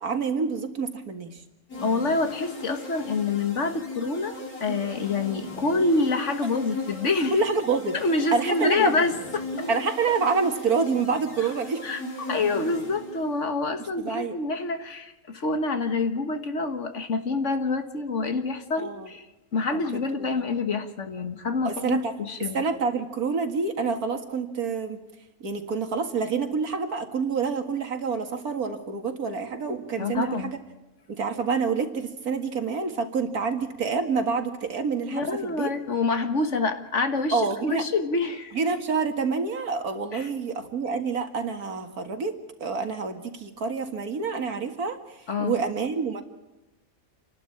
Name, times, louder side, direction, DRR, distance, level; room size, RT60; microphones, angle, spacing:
voice 1, 0.0-1.4 7.3-8.0 8.3-8.9 9.7-11.8 14.0-14.4 18.8-19.1 20.2-20.3 21.6-22.1 22.5-25.0 25.4-30.6 31.1-35.7 37.3-37.9 38.5-42.3 42.6-45.0 45.4-46.2, right 4 dB, 90° right, 6 dB, 2.4 m, -27 dB
sound 1, 1.7-13.5, left 2 dB, 80° left, 4.7 m, -38 dB
voice 2, 1.8-7.4 7.9-9.7 11.8-19.3 19.5-22.6 30.0-30.5 35.1-38.6 40.1-40.3 45.3-45.6, left 3 dB, 55° left, 8 dB, 1.8 m, -27 dB
28.5 x 12.0 x 8.8 m, 1.0 s
omnidirectional pair, 1.5 m